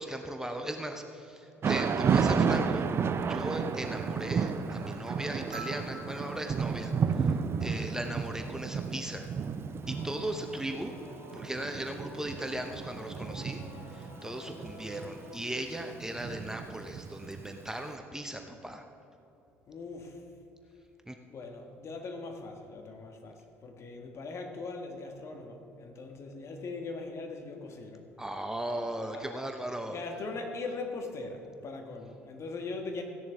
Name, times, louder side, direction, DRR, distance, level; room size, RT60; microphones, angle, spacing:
voice 1, 0.0-2.9 3.2-7.3 7.6-9.3 9.9-10.9 11.3-13.6 13.9-18.8 21.1-21.2 28.2-30.0, right 1 dB, 10° right, 5 dB, 0.8 m, -37 dB
Thunder / Rain, 1.6-17.6, right 6 dB, 35° right, 0.6 m, -32 dB
sound 1, 5.5-8.1 9.7-9.8, right 2 dB, 60° right, 2.0 m, -48 dB
Singing / Musical instrument, 9.8-15.4, left 1 dB, 60° left, 2.8 m, -50 dB
voice 2, 19.7-20.2 21.3-28.0 29.1-29.3 29.9-33.0, left 3 dB, 40° left, 3 dB, 1.6 m, -40 dB
15.5 x 10.5 x 3.5 m, 2.9 s
figure-of-eight pair, 55°, 7 cm